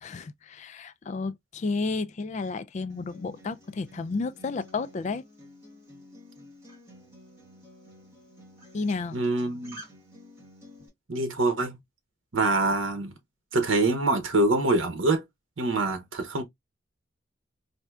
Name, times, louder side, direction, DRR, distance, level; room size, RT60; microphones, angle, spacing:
voice 1, 0.0-5.2 8.7-9.2, left 3 dB, 35° left, 0.3 m, -32 dB
Acoustic guitar, 2.9-10.9, equal, 15° right, 1.5 m, -51 dB
voice 2, 9.1-9.8 11.1-11.8 12.3-13.1 13.5-15.2 15.6-16.4, right 2 dB, 90° right, 0.8 m, -25 dB
4.2 x 2.6 x 2.3 m
head